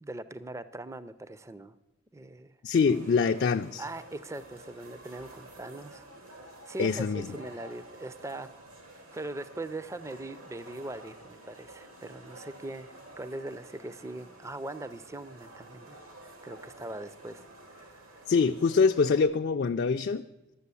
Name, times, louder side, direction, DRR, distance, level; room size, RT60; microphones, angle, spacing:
voice 1, 0.0-1.8 2.1-2.5 3.8-6.0 6.7-8.5 8.9-18.2, right 2 dB, 15° right, 14 dB, 0.4 m, -41 dB
voice 2, 2.6-3.8 6.8-7.4 18.3-20.2, left 5 dB, 50° left, 6 dB, 0.4 m, -24 dB
sound 1, 2.8-19.2, right 1 dB, 90° right, 2.5 m, -50 dB
12.0 x 7.6 x 8.2 m, 0.97 s
head